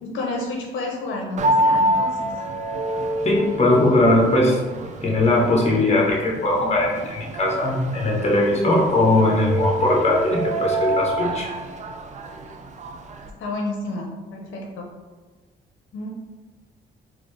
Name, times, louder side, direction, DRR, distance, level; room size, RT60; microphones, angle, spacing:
voice 1, 0.0-2.3 13.4-14.9 15.9-16.1, left 2 dB, 75° left, -1 dB, 0.7 m, -30 dB
sound 1, 1.4-13.3, right 1 dB, 35° right, 0.4 m, -27 dB
voice 2, 3.2-4.6 5.0-11.5, left 2 dB, 35° left, -2 dB, 1.1 m, -19 dB
4.0 x 2.7 x 3.2 m, 1.3 s
cardioid pair, 90°, 20 cm